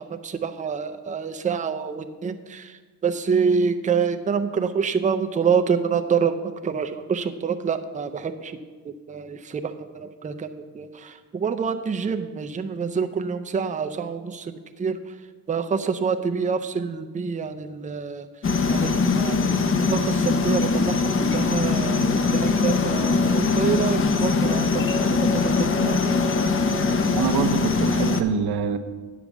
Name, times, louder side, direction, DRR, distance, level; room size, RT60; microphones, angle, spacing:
voice 1, 0.0-8.6 8.8-15.1 15.5-18.3 18.7-26.2, right 6 dB, 20° right, 7 dB, 0.5 m, -27 dB
sound 1, 18.4-28.2, left 4 dB, 30° left, 0.7 m, -22 dB
voice 2, 27.1-28.8, right 6 dB, 70° right, 8 dB, 0.9 m, -25 dB
10.0 x 4.9 x 7.2 m, 1.4 s
cardioid pair, 110°, 41 cm